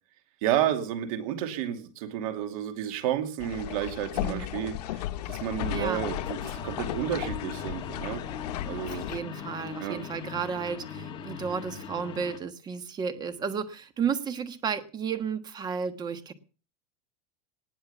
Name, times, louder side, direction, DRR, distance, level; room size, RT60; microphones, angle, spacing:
voice 1, 0.4-5.0 5.3-8.2 8.6-9.0 9.8-10.0, right 11 dB, 65° right, 8 dB, 2.6 m, -31 dB
sound 1, 3.4-9.2, left 14 dB, 85° left, 0.9 m, -35 dB
voice 2, 4.2-4.5 5.7-6.1 8.8-16.3, right 6 dB, 20° right, 11 dB, 1.4 m, -33 dB
sound 2, 5.6-12.4, left 6 dB, 25° left, 1.9 m, -40 dB
19.0 x 7.9 x 6.9 m, 0.38 s
supercardioid pair, 155°, 20 cm